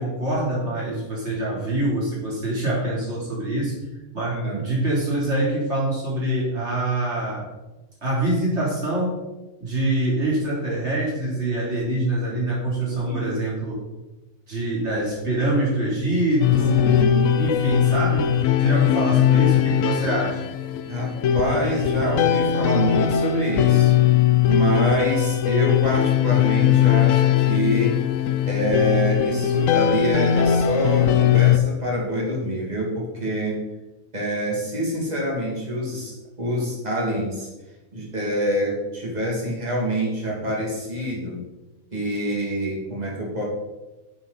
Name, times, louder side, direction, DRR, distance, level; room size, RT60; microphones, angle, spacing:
voice 1, 0.0-3.8 4.1-7.5 8.0-9.2 9.6-13.8 14.5-17.0 17.4-20.4, right 1 dB, 50° right, -5 dB, 3.7 m, -25 dB
voice 2, 4.3-4.7 12.8-13.3 16.8-17.4 20.9-24.0 24.5-28.0 28.5-33.6 34.1-37.5 37.9-41.4 41.9-43.4, equal, 25° right, -3 dB, 2.7 m, -26 dB
sound 1, 16.4-31.6, left 10 dB, 70° left, 0.9 m, -20 dB
10.5 x 6.8 x 4.1 m, 1.1 s
omnidirectional pair, 1.5 m